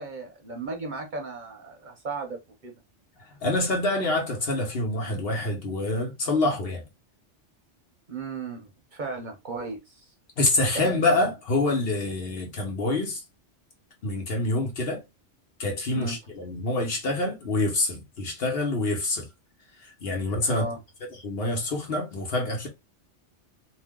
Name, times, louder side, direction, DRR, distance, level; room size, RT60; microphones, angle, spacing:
voice 1, 0.0-2.7 8.1-10.1 10.7-10.9 11.2-11.3 15.9-16.2 20.5-20.8, right 3 dB, 50° right, 0.8 m, -35 dB
voice 2, 3.2-6.8 10.4-13.2 14.0-15.0 15.6-19.3 20.0-20.7 21.2-22.7, left 2 dB, 60° left, 1.1 m, -26 dB
2.7 x 2.1 x 3.5 m
omnidirectional pair, 1.2 m